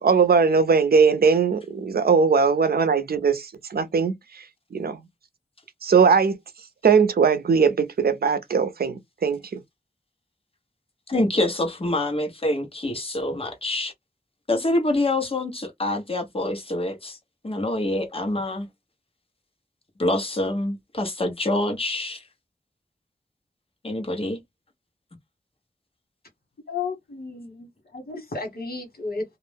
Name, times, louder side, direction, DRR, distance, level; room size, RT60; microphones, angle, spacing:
voice 1, 0.0-4.1 4.7-5.0 5.8-6.4 6.8-9.6, right 5 dB, 85° right, 0.5 m, -20 dB
voice 2, 11.1-13.9 14.5-17.2 17.4-18.7 20.0-22.2 23.8-24.4, left 1 dB, 40° left, 0.9 m, -26 dB
voice 3, 26.7-29.2, left 4 dB, 85° left, 1.3 m, -33 dB
2.5 x 2.0 x 3.2 m
wide cardioid pair, 75°, 16 cm